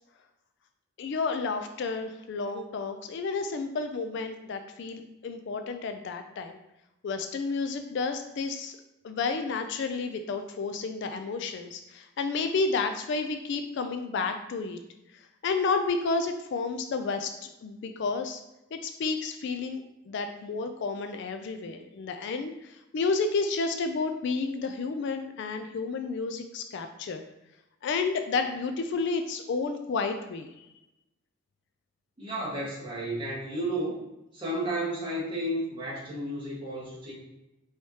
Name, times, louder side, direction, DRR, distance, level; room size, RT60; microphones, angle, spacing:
voice 1, 1.0-6.6 7.0-8.8 9.0-14.8 15.4-18.4 18.7-27.2 27.8-30.7, left 4 dB, 55° left, 7 dB, 0.3 m, -31 dB
voice 2, 32.2-34.0 34.3-37.1, right 1 dB, 25° right, -7 dB, 1.4 m, -32 dB
4.6 x 3.2 x 2.8 m, 0.91 s
head